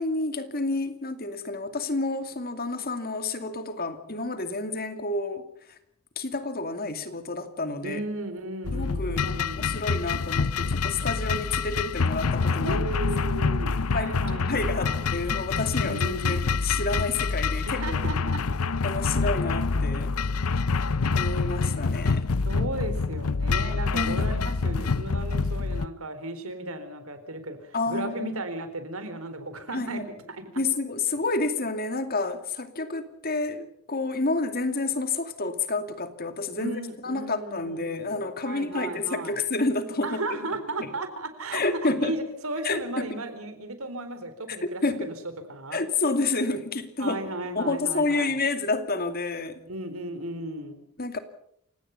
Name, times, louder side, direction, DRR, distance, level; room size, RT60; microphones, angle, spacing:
voice 1, 0.0-5.8 6.2-8.0 8.7-12.8 13.4-18.0 18.8-20.1 21.1-22.3 23.9-24.4 27.7-28.3 29.7-30.1 30.6-40.2 40.8-40.9 41.5-42.1 42.6-43.2 44.5-45.1 45.7-47.2 47.5-49.6 51.0-51.2, left 3 dB, 45° left, 8 dB, 2.5 m, -29 dB
voice 2, 7.8-9.8 12.6-15.1 15.8-16.4 17.7-18.4 22.5-30.0 30.3-30.6 36.6-39.4 40.0-45.1 45.5-45.8 47.0-48.4 49.7-50.8, right 2 dB, 75° right, 10 dB, 4.1 m, -35 dB
sound 1, 8.6-25.9, left 4 dB, 80° left, 0.7 m, -26 dB
29.0 x 18.0 x 5.8 m, 0.71 s
head